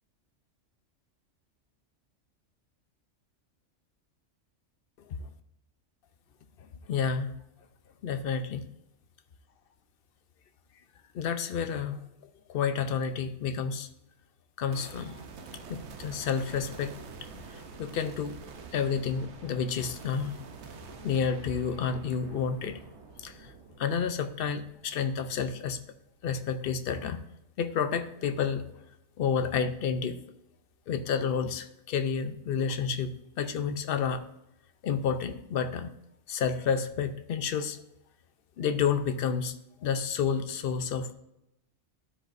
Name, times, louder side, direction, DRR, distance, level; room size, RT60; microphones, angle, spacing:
voice 1, 6.9-7.3 8.0-8.6 11.1-12.0 12.5-13.9 14.6-15.2 15.7-16.9 17.5-18.3 18.7-20.5 21.0-22.8 23.2-23.5 23.8-25.8 26.2-27.2 27.6-28.8 29.2-30.2 30.9-34.3 34.8-35.9 36.3-37.8 38.6-41.1, left 6 dB, 60° left, 10 dB, 0.7 m, -30 dB
sound 1, 14.7-26.1, right 5 dB, 65° right, 1.0 m, -47 dB
12.5 x 5.2 x 2.5 m, 0.85 s
omnidirectional pair, 1.3 m